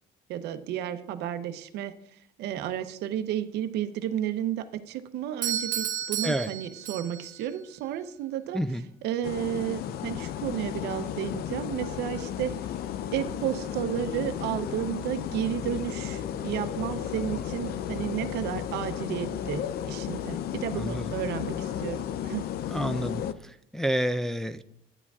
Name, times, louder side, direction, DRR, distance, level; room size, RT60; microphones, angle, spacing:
voice 1, 0.3-8.6 9.0-12.7 13.1-22.5, right 11 dB, 80° right, 11 dB, 0.7 m, -32 dB
Doorbell, 5.4-7.4, right 9 dB, 55° right, 1.1 m, -32 dB
voice 2, 8.5-8.8 20.8-21.1 22.7-24.6, equal, 5° left, 9 dB, 0.3 m, -29 dB
sound 1, 9.2-23.3, left 10 dB, 65° left, 0.5 m, -34 dB
11.0 x 9.8 x 2.4 m, 0.72 s
cardioid pair, 110°, 17 cm